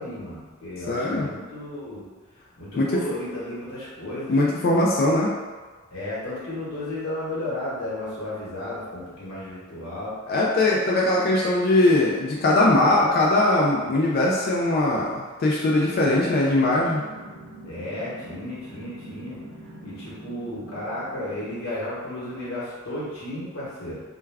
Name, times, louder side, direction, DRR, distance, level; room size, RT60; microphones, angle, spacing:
voice 1, 0.0-2.1 2.6-4.3 5.9-10.2 17.6-19.4 19.8-24.0, left 1 dB, 65° left, -8 dB, 1.1 m, -33 dB
voice 2, 0.9-1.3 2.8-2.9 4.3-5.4 10.3-17.0, left 2 dB, 45° left, -3 dB, 0.3 m, -21 dB
sound 1, 16.6-21.7, right 1 dB, 70° right, 0.5 m, -44 dB
2.3 x 2.2 x 3.3 m, 1.4 s
head